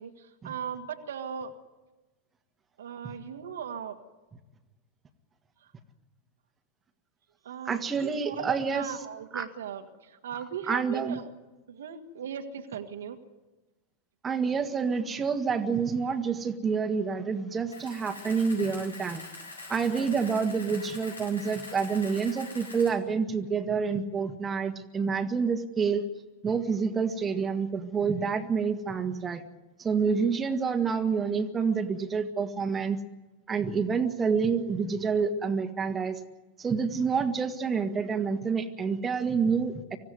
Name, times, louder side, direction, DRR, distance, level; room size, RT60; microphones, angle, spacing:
voice 1, 0.0-1.5 2.8-4.0 7.4-11.2 11.7-13.2 20.0-20.2, right 8 dB, 65° right, 5 dB, 1.9 m, -38 dB
voice 2, 7.7-8.9 9.3-9.5 10.7-11.2 14.2-19.2 19.7-26.0 26.4-29.4 29.8-33.0 33.5-36.2 36.6-40.0, right 5 dB, 20° right, 5 dB, 1.9 m, -28 dB
Camera, 17.7-22.9, left 3 dB, 80° left, 7.6 m, -44 dB
25.0 x 16.0 x 9.5 m, 1.1 s
figure-of-eight pair, 90°, 0 cm